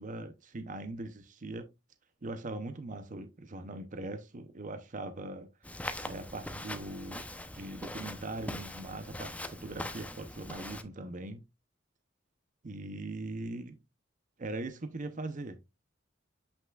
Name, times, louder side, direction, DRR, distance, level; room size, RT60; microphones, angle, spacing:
voice 1, 0.0-1.7 2.2-7.3 7.5-11.4 12.6-13.8 14.4-15.6, right 2 dB, 40° right, 0.7 m, -41 dB
Walk footsteps, 5.6-10.8, left 1 dB, 5° left, 0.6 m, -42 dB
7.9 x 5.7 x 2.3 m
head